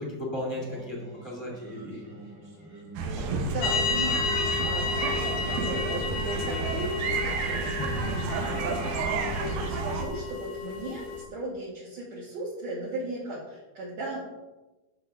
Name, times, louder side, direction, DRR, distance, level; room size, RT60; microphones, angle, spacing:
voice 1, 0.0-2.2 3.1-3.5 7.8-8.1, left 1 dB, 10° left, -3 dB, 1.3 m, -36 dB
Singing, 0.5-11.6, right 1 dB, 35° right, 1.5 m, -47 dB
sound 1, 3.0-10.0, right 4 dB, 80° right, 2.8 m, -31 dB
voice 2, 3.3-4.3 4.6-7.7 8.3-14.3, right 1 dB, 55° right, -6 dB, 2.7 m, -37 dB
sound 2, 3.6-11.2, left 5 dB, 85° left, 1.4 m, -32 dB
12.0 x 6.8 x 3.5 m, 1.1 s
omnidirectional pair, 4.3 m